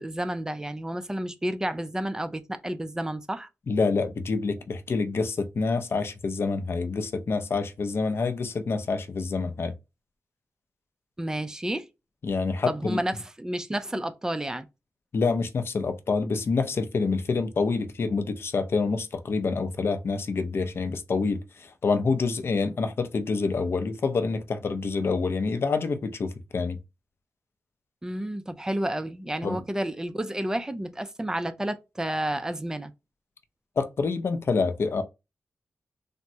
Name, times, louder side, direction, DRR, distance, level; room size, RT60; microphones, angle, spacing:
voice 1, 0.0-3.5 11.2-11.9 12.7-14.7 28.0-32.9, right 1 dB, 10° right, 0.3 m, -31 dB
voice 2, 3.7-9.7 12.2-13.0 15.1-26.8 29.4-29.6 33.8-35.0, left 4 dB, 55° left, 0.4 m, -27 dB
3.4 x 2.0 x 2.7 m
wide cardioid pair, 140°, 5 cm